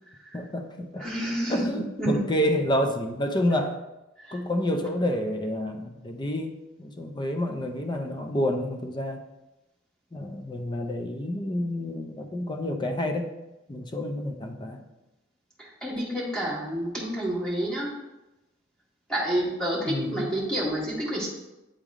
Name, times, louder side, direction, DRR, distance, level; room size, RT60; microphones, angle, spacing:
voice 1, 0.3-1.1 1.5-3.8 4.3-9.2 10.1-13.3 13.7-14.8 19.9-20.3, left 1 dB, 25° left, 5 dB, 0.5 m, -29 dB
voice 2, 1.0-2.2 4.2-4.4 15.6-17.9 19.1-21.3, right 1 dB, 5° left, -7 dB, 1.6 m, -29 dB
8.8 x 3.4 x 3.6 m, 0.99 s
head